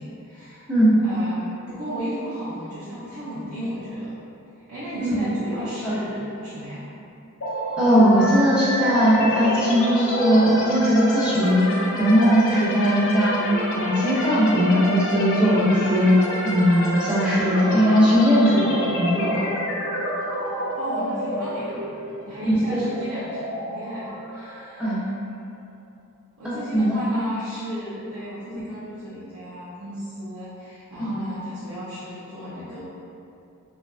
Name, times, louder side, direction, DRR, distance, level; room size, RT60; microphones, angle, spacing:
voice 1, 0.0-0.7 1.0-4.1 4.7-6.8 20.7-21.8 22.2-25.0 26.4-32.8, equal, 80° right, -12 dB, 0.6 m, -34 dB
sound 1, 7.4-25.2, equal, 60° left, 0.4 m, -29 dB
voice 2, 7.8-11.6 12.0-13.4 13.7-16.1 16.4-19.4 24.8-25.0 26.4-27.0 31.0-31.1, equal, 5° right, -10 dB, 0.5 m, -19 dB
2.7 x 2.3 x 2.3 m, 2.6 s
head